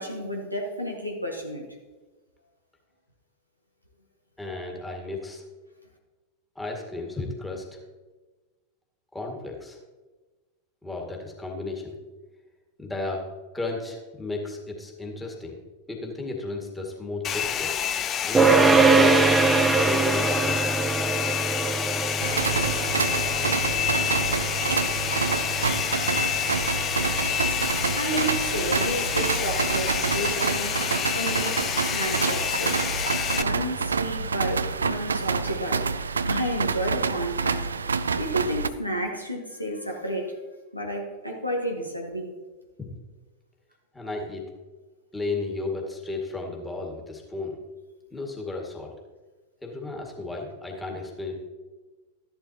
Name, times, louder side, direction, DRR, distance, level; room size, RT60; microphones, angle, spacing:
voice 1, 0.0-1.6 27.9-32.9 33.3-35.9 36.2-37.6 38.2-40.3 40.7-42.3, equal, 90° left, 1 dB, 1.5 m, -31 dB
voice 2, 4.4-5.5 6.6-7.8 9.1-9.8 10.8-11.9 12.8-13.2 13.5-15.6 15.9-17.7 18.2-19.3 19.7-20.6 42.8-43.0 43.9-44.5 45.1-47.6 48.1-48.9 49.6-51.5, left 3 dB, 10° left, 0 dB, 2.1 m, -34 dB
Domestic sounds home sounds, 17.2-33.4, left 9 dB, 30° left, 0.5 m, -28 dB
sound 1, 18.3-29.7, right 4 dB, 15° right, 0.6 m, -24 dB
sound 2, 22.2-38.7, right 5 dB, 75° right, 0.4 m, -27 dB
13.0 x 11.0 x 2.9 m, 1.3 s
figure-of-eight pair, 90°, 0 cm